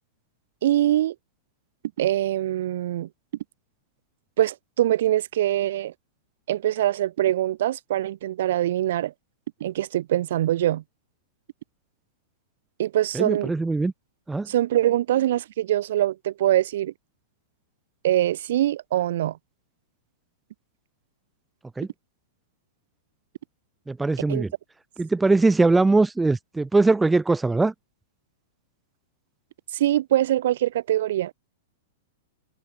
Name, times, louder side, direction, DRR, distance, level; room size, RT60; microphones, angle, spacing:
voice 1, 0.6-1.2 2.0-3.1 4.4-5.9 6.5-9.1 9.6-10.8 12.8-13.5 14.5-16.9 18.0-19.4 24.3-24.4 29.7-31.3, right 13 dB, 70° right, 5.3 m, -23 dB
voice 2, 13.1-13.9 14.3-14.5 21.8-21.9 23.9-24.5 25.0-27.7, right 3 dB, 5° right, 2.1 m, -21 dB
hypercardioid pair, 140°, 0 cm